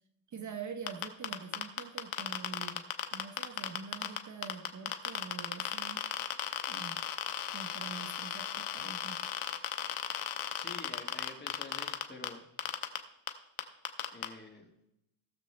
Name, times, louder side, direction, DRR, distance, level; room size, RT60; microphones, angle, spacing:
voice 1, 0.3-6.0 6.6-9.2, right 5 dB, 35° right, 6 dB, 0.8 m, -45 dB
sound 1, 0.9-4.2 4.4-12.3 12.6-13.0 13.3-13.4 13.6-14.3, left 11 dB, 85° left, 1.1 m, -35 dB
voice 2, 10.5-12.4 14.1-14.7, left 3 dB, 20° left, 3 dB, 1.5 m, -48 dB
17.5 x 6.7 x 3.2 m, 0.83 s
cardioid pair, 150°, 48 cm